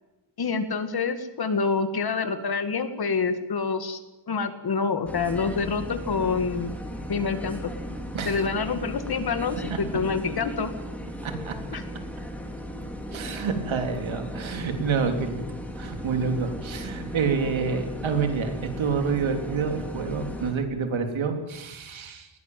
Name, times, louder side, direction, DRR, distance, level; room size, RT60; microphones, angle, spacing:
voice 1, 0.4-4.0 4.3-6.8 7.1-7.7 8.3-10.7 11.7-11.8, left 5 dB, 50° left, 9 dB, 2.2 m, -27 dB
sound 1, 5.1-20.5, equal, 5° left, 3.7 m, -36 dB
voice 2, 11.2-11.5 12.7-12.8 13.1-15.4 15.7-22.3, right 5 dB, 80° right, 5 dB, 3.6 m, -28 dB
20.5 x 18.0 x 9.3 m, 0.97 s
wide cardioid pair, 160°, 46 cm